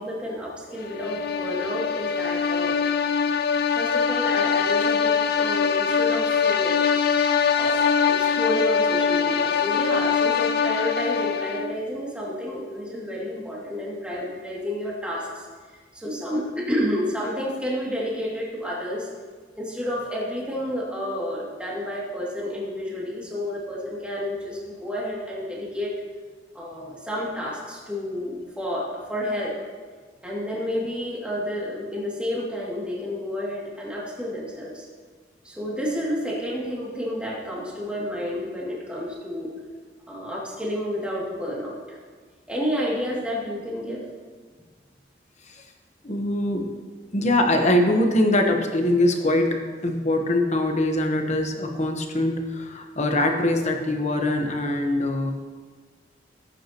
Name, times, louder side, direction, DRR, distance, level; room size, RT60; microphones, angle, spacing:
voice 1, 0.0-2.8 3.7-6.8 7.6-15.5 15.9-19.1 19.6-25.9 26.5-29.6 30.2-34.8 35.4-39.5 40.1-42.0 42.5-44.0, equal, 5° right, -6 dB, 2.5 m, -30 dB
sound 1, 0.8-11.8, left 6 dB, 60° left, 0.6 m, -23 dB
voice 2, 46.0-46.7 47.1-55.3, left 1 dB, 40° left, 3 dB, 1.2 m, -23 dB
17.0 x 8.9 x 3.0 m, 1.5 s
head